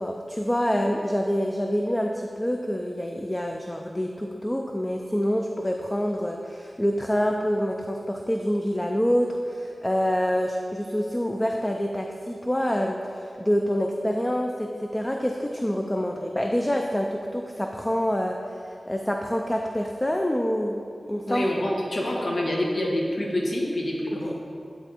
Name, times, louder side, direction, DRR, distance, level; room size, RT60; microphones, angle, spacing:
voice 1, 0.0-21.5 24.2-24.3, equal, 15° left, 2 dB, 0.4 m, -26 dB
voice 2, 21.3-24.4, left 1 dB, 70° left, -3 dB, 1.3 m, -26 dB
10.0 x 3.5 x 4.3 m, 2.4 s
wide cardioid pair, 60°, 0 cm